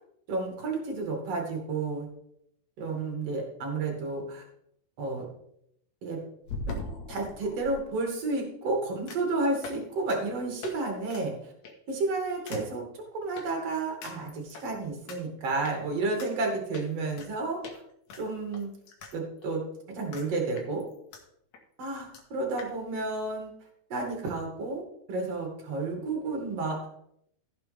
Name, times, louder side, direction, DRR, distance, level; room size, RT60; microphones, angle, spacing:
voice 1, 0.3-2.1 2.8-4.4 5.0-5.3 6.0-6.2 6.7-6.8 7.1-11.3 11.9-17.8 18.2-18.7 19.1-19.6 19.9-20.8 21.8-23.5 23.9-24.8 25.1-26.9, right 3 dB, 45° right, 1 dB, 3.2 m, -31 dB
sound 1, 6.5-7.8 9.1-9.3 9.6-9.8 10.1-10.2 10.6-10.8 11.1-11.2 11.6-11.9 12.5-12.6 13.4-13.5 14.0-14.7 15.1-15.2 15.6-15.8 16.2-16.3 16.7-17.3 17.6-17.8 18.1-19.1 19.4-19.5 20.1-20.3 20.6-21.2 21.5-21.6 21.8-21.9 22.1-22.2 22.6-22.7, left 2 dB, 60° left, 2.3 m, -40 dB
15.5 x 6.7 x 3.5 m, 0.72 s
omnidirectional pair, 4.5 m